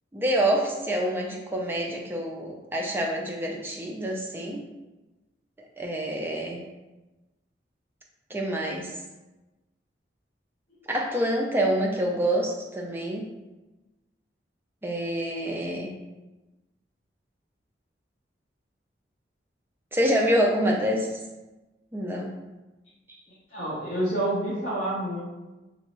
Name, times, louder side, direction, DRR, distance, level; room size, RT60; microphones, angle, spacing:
voice 1, 0.1-4.6 5.8-6.6 8.3-8.9 10.9-13.3 14.8-15.9 19.9-21.1 21.9-22.3, right 1 dB, 10° right, 0 dB, 0.3 m, -26 dB
voice 2, 23.3-25.2, right 1 dB, 35° left, -9 dB, 0.7 m, -28 dB
3.0 x 2.6 x 2.9 m, 1.1 s
head